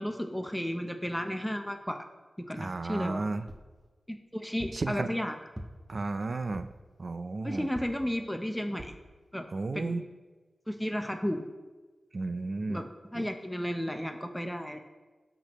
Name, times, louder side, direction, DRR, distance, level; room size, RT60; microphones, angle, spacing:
voice 1, 0.0-2.0 2.4-3.2 4.1-5.4 7.4-8.9 9.3-9.5 9.7-10.0 10.7-11.4 12.7-14.8, equal, 5° left, 5 dB, 0.7 m, -33 dB
voice 2, 2.6-3.4 4.7-5.1 5.9-6.7 7.0-7.7 9.5-10.0 12.1-12.8 13.2-13.3, right 3 dB, 50° right, 10 dB, 0.5 m, -33 dB
sound 1, 3.5-3.8 4.6-4.9 5.6-6.0 6.5-6.9 7.8-8.1 8.8-9.1 9.7-9.8 10.0-10.1, equal, 10° right, 1.1 m, -45 dB
17.0 x 6.0 x 3.1 m, 1.3 s
wide cardioid pair, 80°, 0 cm